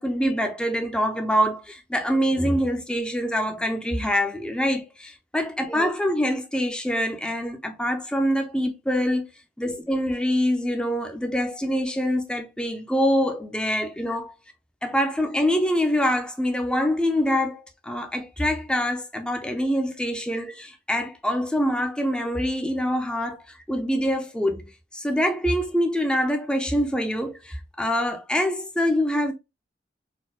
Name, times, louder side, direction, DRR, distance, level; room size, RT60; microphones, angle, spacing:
voice 1, 0.0-9.2 9.6-14.3 14.8-23.4 23.7-24.6 24.9-29.3, equal, 5° left, 0.5 m, -25 dB
4.1 x 2.1 x 2.3 m
head